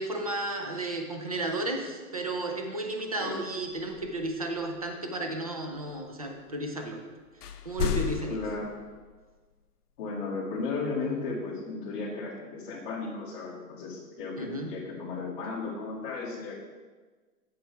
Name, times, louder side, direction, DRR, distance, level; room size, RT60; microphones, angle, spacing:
voice 1, 0.0-7.0 7.7-8.4 14.4-14.7, right 2 dB, 25° right, 3 dB, 0.4 m, -33 dB
sound 1, 3.6-4.9 5.8-6.6 6.9-7.0 7.3-9.2, left 8 dB, 75° left, 0.8 m, -35 dB
voice 2, 8.3-8.8 10.0-16.5, left 4 dB, 35° left, -5 dB, 2.1 m, -35 dB
8.3 x 7.2 x 3.3 m, 1.4 s
hypercardioid pair, 160°, 47 cm